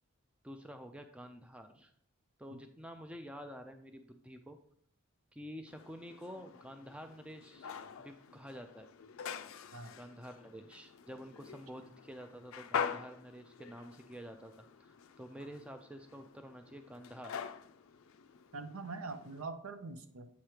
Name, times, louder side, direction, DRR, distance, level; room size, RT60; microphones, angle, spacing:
voice 1, 0.4-1.9 2.4-4.6 5.3-7.7 8.0-8.9 9.9-17.5, equal, 5° right, 6 dB, 0.4 m, -49 dB
sound 1, 5.7-19.4, left 7 dB, 65° left, 0.4 m, -45 dB
voice 2, 18.5-20.3, right 3 dB, 80° right, 8 dB, 0.7 m, -43 dB
8.2 x 3.0 x 4.9 m, 0.64 s
head